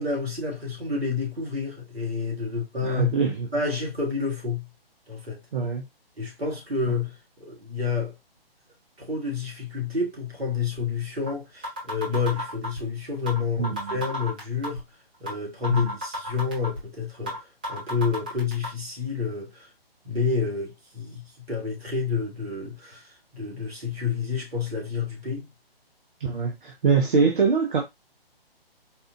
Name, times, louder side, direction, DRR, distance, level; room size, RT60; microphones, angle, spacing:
voice 1, 0.0-3.1 3.5-4.7 5.1-5.4 6.2-8.2 9.0-14.8 15.2-17.4 17.7-19.7 20.0-25.5, left 5 dB, 80° right, 1.7 m, -29 dB
voice 2, 2.8-3.5 5.5-5.8 13.6-13.9 15.7-15.9 26.2-27.8, right 5 dB, 55° right, 0.7 m, -23 dB
sound 1, 11.3-11.4 11.6-12.8 13.3-13.4 13.6-14.8 15.3-15.4 15.6-16.8 17.3-17.4 17.6-18.7, equal, 10° right, 0.4 m, -32 dB
4.2 x 2.4 x 2.5 m
figure-of-eight pair, 140°, 30 cm